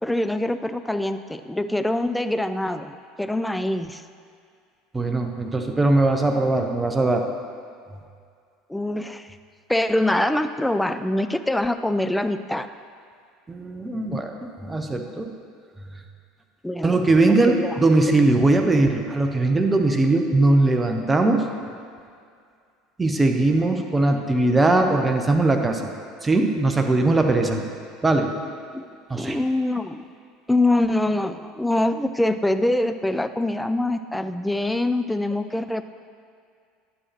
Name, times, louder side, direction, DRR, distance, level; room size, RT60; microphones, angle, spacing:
voice 1, 0.0-4.0 8.7-9.3 9.7-12.7 16.6-17.0 17.3-18.2 28.7-28.9 29.1-30.1 30.5-35.8, left 1 dB, 5° left, 10 dB, 0.3 m, -24 dB
voice 2, 4.9-7.3 13.5-15.3 16.8-21.4 23.0-25.9 26.2-27.6 28.0-28.3 29.1-29.4, right 2 dB, 15° right, 4 dB, 0.7 m, -20 dB
9.7 x 6.2 x 2.9 m, 2.3 s
figure-of-eight pair, 70°, 0 cm